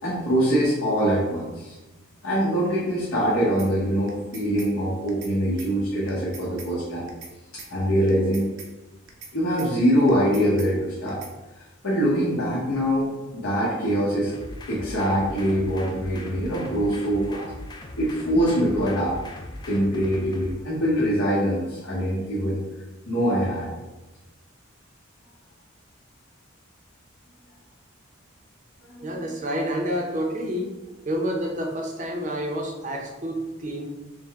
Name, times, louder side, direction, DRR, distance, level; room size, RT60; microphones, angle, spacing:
voice 1, 0.0-1.8 2.2-7.1 7.7-8.4 9.3-11.2 11.8-14.3 14.7-17.4 18.0-19.2 19.6-22.6 23.1-23.7 28.9-29.3, equal, 75° left, -8 dB, 1.1 m, -23 dB
sound 1, 3.6-3.7 4.1-4.7 5.1-5.3 5.6-5.7 6.1-6.7 7.1-7.3 7.6-7.7 8.1-8.7 9.1-9.3 9.6-9.7 10.1-10.7 11.1-11.3, right 5 dB, 75° right, 0.7 m, -42 dB
sound 2, 14.3-20.5, left 1 dB, 20° left, 0.3 m, -39 dB
voice 2, 29.0-30.7 31.1-33.9, equal, 35° right, 1 dB, 0.6 m, -28 dB
5.2 x 2.2 x 3.5 m, 1.1 s
head